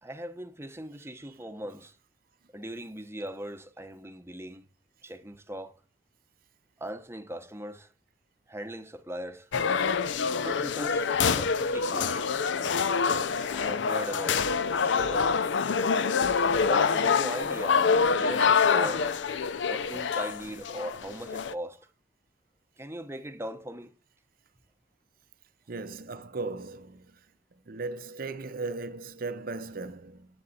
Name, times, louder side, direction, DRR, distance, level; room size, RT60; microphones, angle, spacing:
voice 1, 0.0-1.9 2.5-4.6 5.0-5.8 6.8-7.9 8.5-9.5 10.4-11.1 11.3-12.3 13.5-14.5 14.8-15.8 16.6-19.1 19.6-21.8 22.8-23.9, equal, 15° right, 0.7 m, -39 dB
sound 1, 9.5-21.5, left 5 dB, 80° left, 0.6 m, -26 dB
voice 2, 25.7-27.1 27.7-30.3, right 3 dB, 50° right, 0.6 m, -37 dB
8.7 x 7.7 x 4.1 m
head